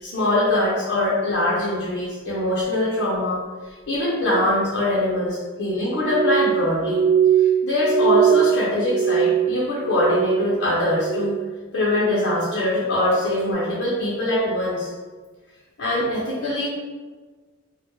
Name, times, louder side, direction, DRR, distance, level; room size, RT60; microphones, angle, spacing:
voice 1, 0.0-3.4 3.9-7.0 7.4-11.4 11.7-14.9 15.8-16.7, left 1 dB, 60° left, -7 dB, 0.5 m, -22 dB
Glass, 6.0-10.6 10.9-11.5 11.9-12.5 13.1-13.3, right 8 dB, 80° right, 0.3 m, -21 dB
2.2 x 2.0 x 2.8 m, 1.3 s
head